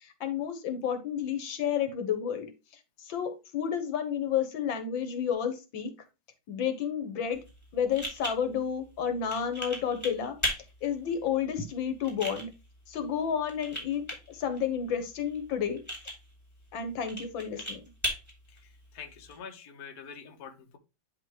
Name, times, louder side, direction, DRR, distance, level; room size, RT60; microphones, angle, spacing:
voice 1, 0.0-2.5 3.1-5.9 6.5-7.4 7.7-10.4 10.8-12.5 12.9-15.8 16.7-17.8, left 8 dB, 85° left, 1.9 m, -31 dB
sound 1, 7.3-19.4, equal, 10° left, 3.0 m, -39 dB
voice 2, 18.9-20.8, left 6 dB, 55° left, 1.5 m, -45 dB
10.5 x 3.6 x 3.0 m
omnidirectional pair, 2.1 m